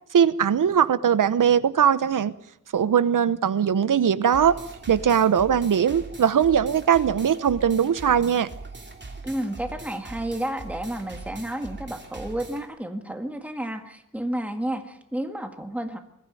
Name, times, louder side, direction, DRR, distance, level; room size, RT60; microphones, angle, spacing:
voice 1, 0.1-2.3 2.7-4.6 4.9-8.5, right 8 dB, 75° right, 16 dB, 1.0 m, -20 dB
sound 1, 4.3-12.7, right 3 dB, 35° right, 3.0 m, -41 dB
voice 2, 9.2-16.0, right 1 dB, 5° right, 6 dB, 1.8 m, -31 dB
21.5 x 14.5 x 9.1 m, 0.78 s
wide cardioid pair, 130°, 32 cm